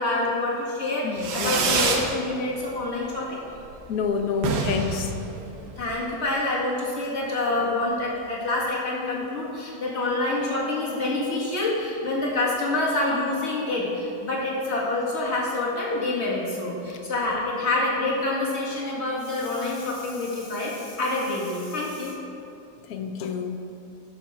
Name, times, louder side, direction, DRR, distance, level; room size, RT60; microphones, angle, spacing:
voice 1, 0.0-3.4 5.8-22.1, left 2 dB, 40° left, -5 dB, 2.1 m, -27 dB
voice 2, 1.0-1.7 3.9-5.1 22.9-23.6, left 6 dB, 65° left, 6 dB, 1.1 m, -28 dB
Fireworks, 1.2-2.1 2.5-3.0 3.3-3.4 3.6-3.7 4.0-4.1 4.3-6.0, right 4 dB, 90° right, 1.5 m, -26 dB
11.5 x 6.3 x 4.3 m, 2.6 s
omnidirectional pair, 1.8 m